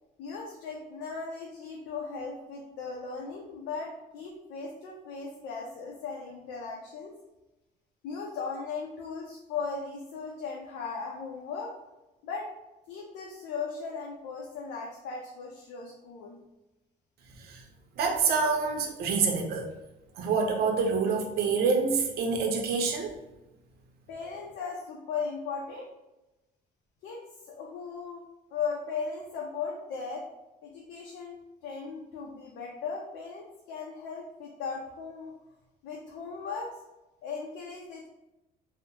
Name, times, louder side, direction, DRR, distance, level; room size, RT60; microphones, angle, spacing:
voice 1, 0.2-7.1 8.0-11.7 12.2-12.5 12.9-16.4 24.1-25.9 27.0-28.2 28.5-30.2 30.6-35.3 35.8-36.7 37.2-38.1, left 5 dB, 90° left, -1 dB, 0.5 m, -37 dB
voice 2, 18.0-19.7 20.2-23.1, right 5 dB, 70° right, 2 dB, 0.6 m, -27 dB
2.7 x 2.0 x 2.8 m, 0.98 s
cardioid pair, 110°, 17 cm